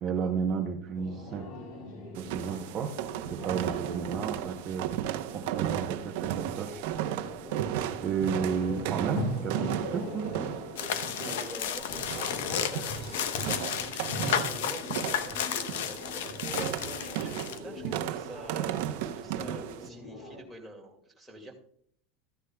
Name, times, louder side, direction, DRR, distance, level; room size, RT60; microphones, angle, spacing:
voice 1, 0.0-1.5 2.2-3.0 3.3-4.9 5.3-6.8 7.7-10.3, right 6 dB, 30° right, 3 dB, 0.8 m, -32 dB
sound 1, 0.9-20.4, left 1 dB, 45° left, 2.7 m, -41 dB
sound 2, 2.2-19.9, right 11 dB, 60° right, 0.8 m, -35 dB
sound 3, 10.8-17.6, left 9 dB, 80° left, 0.9 m, -33 dB
voice 2, 10.8-21.6, right 1 dB, ahead, -3 dB, 2.1 m, -47 dB
14.0 x 9.8 x 2.3 m, 0.64 s
supercardioid pair, 165°, 0 cm